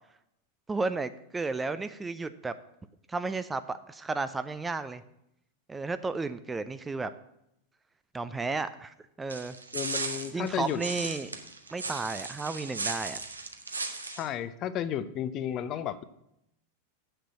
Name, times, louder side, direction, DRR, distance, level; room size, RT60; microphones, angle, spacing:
voice 1, 0.7-2.5 3.1-5.0 5.7-7.1 8.1-9.6 10.3-11.3 11.7-13.2, right 3 dB, 10° right, 12 dB, 0.5 m, -33 dB
sound 1, 9.3-14.3, right 3 dB, 80° right, 1.0 m, -36 dB
voice 2, 9.7-10.8 14.0-16.0, left 10 dB, 35° left, 13 dB, 0.6 m, -33 dB
7.8 x 6.7 x 7.5 m, 0.80 s
figure-of-eight pair, 90°, 0 cm